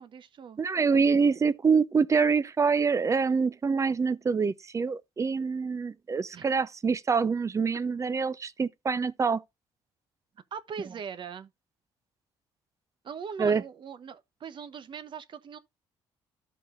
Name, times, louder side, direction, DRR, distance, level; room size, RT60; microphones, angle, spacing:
voice 1, 0.0-0.6 6.3-6.5 10.5-11.5 13.0-15.6, right 6 dB, 50° right, 1.1 m, -40 dB
voice 2, 0.6-9.4 13.4-13.6, right 5 dB, 30° right, 0.7 m, -25 dB
13.5 x 5.3 x 2.6 m
cardioid pair, 90°, 11 cm